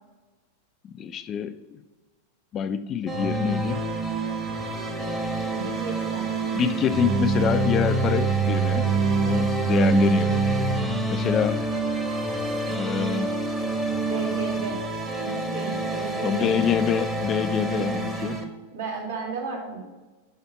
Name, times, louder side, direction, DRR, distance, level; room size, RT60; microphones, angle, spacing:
voice 1, 0.8-1.8 2.5-3.8 6.5-10.4 11.1-11.6 12.7-13.3 16.2-18.4, left 8 dB, 30° left, 11 dB, 0.3 m, -26 dB
sound 1, 3.1-18.4, right 3 dB, 10° right, 1.0 m, -26 dB
voice 2, 5.5-6.4 6.8-6.9 14.1-14.9 15.2-16.8 18.0-18.4 18.7-19.8, right 5 dB, 70° right, -6 dB, 2.5 m, -34 dB
5.6 x 5.5 x 5.7 m, 1.2 s
figure-of-eight pair, 90°, 0 cm